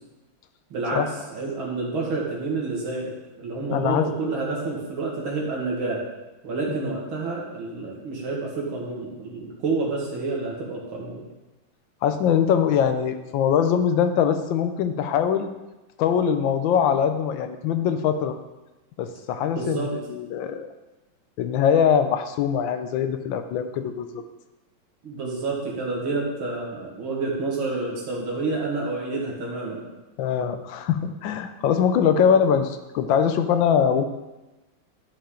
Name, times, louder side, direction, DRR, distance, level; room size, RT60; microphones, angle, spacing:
voice 1, 1.3-6.0 6.4-11.2 19.6-19.9 25.0-29.8, right 3 dB, 70° right, -4 dB, 2.7 m, -29 dB
voice 2, 3.7-4.1 6.7-7.0 12.0-15.5 16.0-18.4 19.0-20.7 21.4-24.2 30.2-34.1, left 8 dB, 70° left, 8 dB, 1.2 m, -22 dB
11.5 x 5.3 x 3.8 m, 1.1 s
omnidirectional pair, 2.4 m